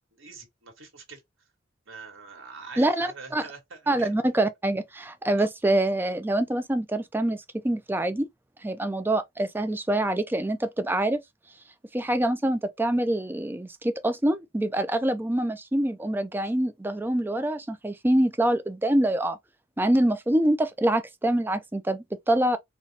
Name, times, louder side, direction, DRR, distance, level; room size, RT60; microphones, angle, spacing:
voice 1, 0.1-1.2 1.9-4.1 5.4-5.5, right 4 dB, 75° right, 1.4 m, -44 dB
voice 2, 2.8-3.4 3.9-8.3 8.6-11.2 11.9-19.4 19.8-22.6, right 1 dB, 10° right, 0.3 m, -25 dB
3.9 x 2.2 x 2.7 m
head